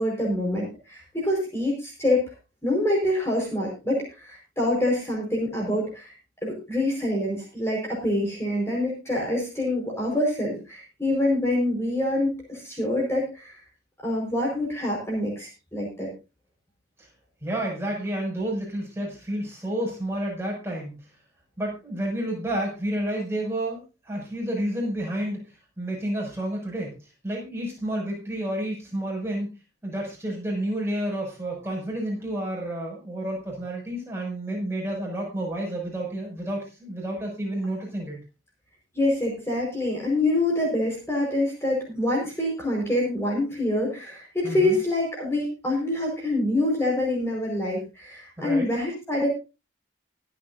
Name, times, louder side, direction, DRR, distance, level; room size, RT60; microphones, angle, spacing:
voice 1, 0.0-2.2 2.6-6.1 6.4-13.5 14.0-16.1 38.9-49.3, left 1 dB, 15° left, -2 dB, 5.0 m, -26 dB
voice 2, 17.4-21.0 21.6-25.5 25.8-26.9 27.2-29.5 29.8-38.2 44.4-44.8 48.4-48.7, right 1 dB, 15° right, -2 dB, 6.6 m, -30 dB
24.0 x 8.8 x 2.7 m, 0.31 s
head